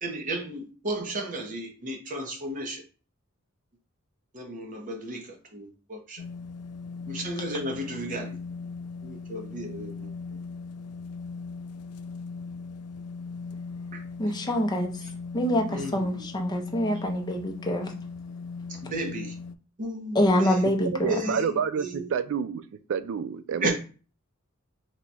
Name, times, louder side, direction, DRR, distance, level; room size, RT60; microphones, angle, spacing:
voice 1, 0.0-2.8 4.3-6.2 7.1-8.4 9.0-10.1 13.9-14.0 15.7-16.2 18.7-19.4 19.8-20.6 21.1-22.1 23.6-23.7, right 1 dB, 40° right, 0.8 m, -34 dB
sound 1, 6.2-19.6, left 4 dB, 85° left, 0.3 m, -39 dB
voice 2, 14.2-15.0 15.3-17.9 20.1-21.2, left 1 dB, 20° left, 0.5 m, -25 dB
voice 3, 20.9-22.6 22.9-23.7, right 6 dB, 60° right, 0.3 m, -28 dB
3.0 x 2.3 x 3.9 m
head